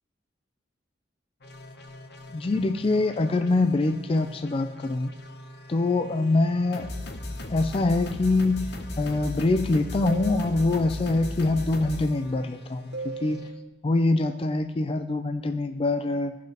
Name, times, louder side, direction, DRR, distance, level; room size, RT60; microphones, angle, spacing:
sound 1, 1.4-13.5, left 1 dB, 65° left, 0.9 m, -38 dB
voice 1, 2.3-5.1 5.7-6.9 7.5-8.7 9.0-13.5 13.8-16.4, left 2 dB, 30° left, 8 dB, 0.4 m, -24 dB
sound 2, 10.0-11.1 12.9-13.7, right 4 dB, 90° right, 1.0 m, -38 dB
16.0 x 5.9 x 3.0 m, 1.1 s
head